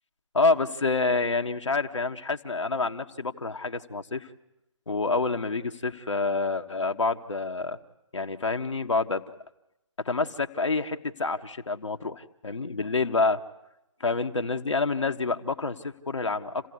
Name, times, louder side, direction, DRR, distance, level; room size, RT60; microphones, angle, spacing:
voice 1, 0.3-4.3 4.9-7.8 8.1-9.2 10.0-13.4 14.0-16.7, left 3 dB, 70° left, 4 dB, 1.6 m, -27 dB
29.0 x 17.0 x 9.7 m, 0.88 s
figure-of-eight pair, 135°, 16 cm